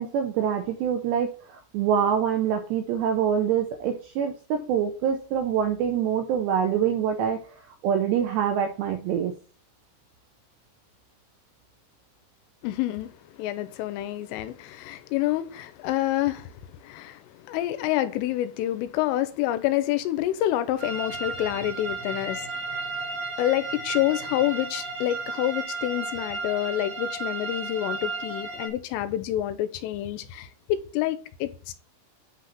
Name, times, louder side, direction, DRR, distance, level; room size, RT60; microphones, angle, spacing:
voice 1, 0.0-7.4 7.8-9.3, right 8 dB, 80° right, 2.5 m, -25 dB
voice 2, 12.6-13.1 13.4-16.5 16.8-22.7 23.4-31.7, left 14 dB, 85° left, 3.2 m, -28 dB
sound 1, 20.8-28.7, right 3 dB, 50° right, 4.0 m, -34 dB
9.0 x 3.9 x 5.7 m
omnidirectional pair, 5.8 m